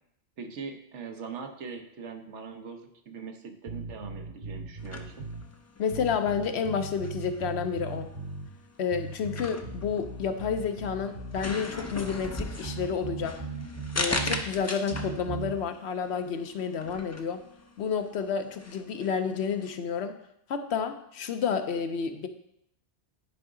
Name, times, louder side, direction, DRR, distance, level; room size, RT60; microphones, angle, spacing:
voice 1, 0.4-5.2, right 5 dB, 90° right, 5 dB, 1.2 m, -41 dB
sound 1, 3.7-5.5 5.9-8.5 8.9-11.5 11.9-14.5 14.9-15.6, right 3 dB, 45° right, 1.0 m, -38 dB
sound 2, 4.8-19.8, left 2 dB, 25° left, 0.3 m, -39 dB
voice 2, 5.8-8.1 8.8-13.4 14.0-17.4 17.8-20.2 20.5-22.3, left 6 dB, 70° left, 8 dB, 0.9 m, -30 dB
9.9 x 4.8 x 3.7 m, 0.74 s
omnidirectional pair, 1.2 m